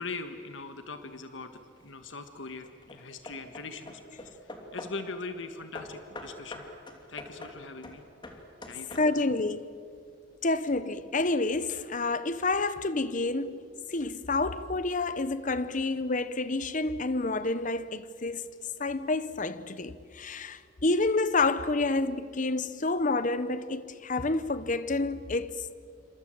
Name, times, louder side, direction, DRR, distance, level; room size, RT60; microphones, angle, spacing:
voice 1, 0.0-6.7 7.1-8.1 8.7-9.3, left 3 dB, 85° left, 1.5 m, -41 dB
Hammer / Wood, 1.6-2.0 2.7-5.1 5.7-9.4, left 1 dB, 25° left, 2.9 m, -45 dB
voice 2, 9.0-9.8 10.4-13.6 13.9-18.5 18.8-25.7, left 3 dB, 45° left, 1.0 m, -29 dB
27.5 x 26.0 x 7.8 m
head